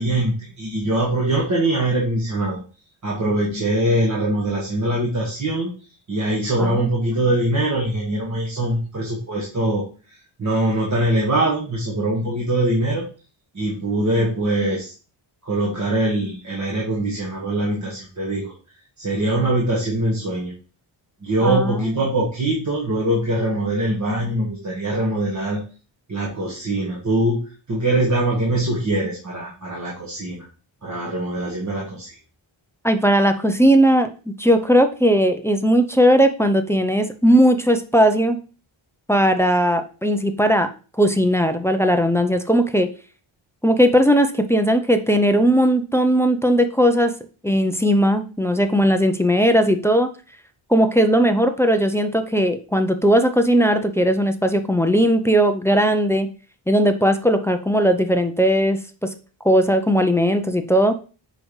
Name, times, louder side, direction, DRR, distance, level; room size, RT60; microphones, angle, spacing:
voice 1, 0.0-2.6 3.0-5.7 6.1-9.8 10.4-13.0 13.5-14.9 15.4-18.5 19.0-20.5 21.2-25.6 26.1-30.4 30.8-32.2, right 1 dB, 35° right, -3 dB, 1.5 m, -22 dB
voice 2, 21.4-21.9 32.8-38.4 39.1-40.7 41.0-42.9 43.6-47.1 47.4-50.1 50.7-56.3 56.7-59.1 59.4-60.9, equal, 5° left, 7 dB, 0.5 m, -18 dB
6.1 x 5.1 x 3.1 m, 0.36 s
wide cardioid pair, 135°, 47 cm